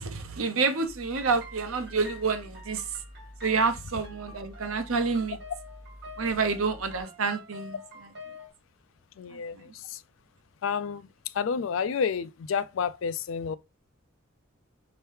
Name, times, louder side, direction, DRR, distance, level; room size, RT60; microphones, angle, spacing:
voice 1, 0.0-3.0 3.4-5.4 6.2-7.8 9.3-9.4, right 4 dB, 90° right, 0.8 m, -28 dB
sound 1, 0.8-7.0, left 1 dB, 25° right, 2.9 m, -48 dB
sound 2, 1.1-8.5, left 1 dB, 50° right, 1.8 m, -48 dB
voice 2, 9.2-10.0 10.6-13.6, left 6 dB, 70° left, 0.3 m, -30 dB
5.5 x 2.9 x 3.3 m
head